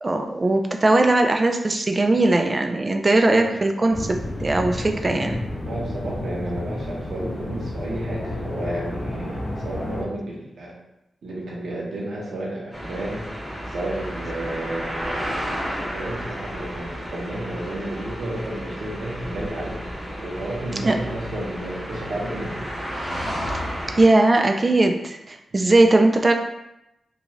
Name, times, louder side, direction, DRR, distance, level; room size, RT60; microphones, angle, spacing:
voice 1, 0.0-5.4 20.8-20.9 23.5-26.3, right 2 dB, 35° right, 4 dB, 0.3 m, -19 dB
voice 2, 3.2-3.5 5.6-10.8 11.2-13.2 13.7-19.8 20.2-22.5 25.5-25.7, right 1 dB, 75° right, -3 dB, 0.8 m, -32 dB
sound 1, 3.9-10.0, left 1 dB, 25° left, 0.5 m, -31 dB
sound 2, 12.7-24.0, equal, 5° right, 0.9 m, -32 dB
2.5 x 2.3 x 3.0 m, 0.88 s
cardioid pair, 70°, 0 cm